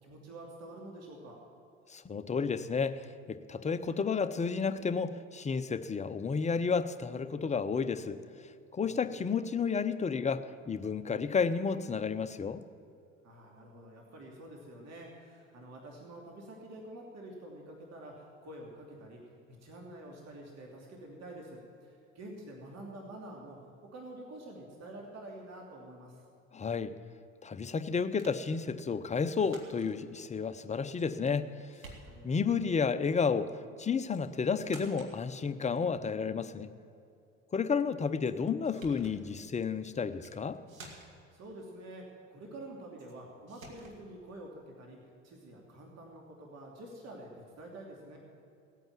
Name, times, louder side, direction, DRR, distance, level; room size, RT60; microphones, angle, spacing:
voice 1, 0.0-1.4 8.8-9.2 13.2-19.2 19.6-23.6 23.9-26.2 32.0-32.7 41.3-42.0 42.3-45.0 45.2-48.2, right 1 dB, 40° right, -1 dB, 2.9 m, -48 dB
voice 2, 1.9-8.2 8.7-12.6 26.5-27.0 27.4-31.5 32.2-36.7 37.5-40.6, left 5 dB, 20° left, 11 dB, 0.7 m, -31 dB
sound 1, 28.2-28.5 29.3-29.9 31.0-31.4 31.7-32.4 34.1-34.3 34.6-35.2 38.2-38.3 38.6-39.2 40.1-40.4 40.7-41.3 43.0-43.2 43.5-44.0, right 2 dB, 90° right, 1.9 m, -52 dB
17.5 x 9.1 x 7.3 m, 2.6 s
figure-of-eight pair, 65°, 39 cm